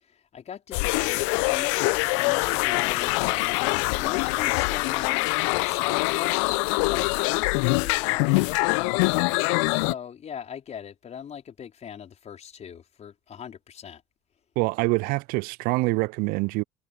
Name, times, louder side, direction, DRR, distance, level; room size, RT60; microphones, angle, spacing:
voice 1, 0.3-9.2 9.7-14.0, left 8 dB, 40° left, 5.1 m, -40 dB
sound 1, 0.7-9.9, left 31 dB, 70° left, 0.9 m, -24 dB
voice 2, 14.6-16.6, right 25 dB, 60° right, 0.7 m, -25 dB
figure-of-eight pair, 55°, 17 cm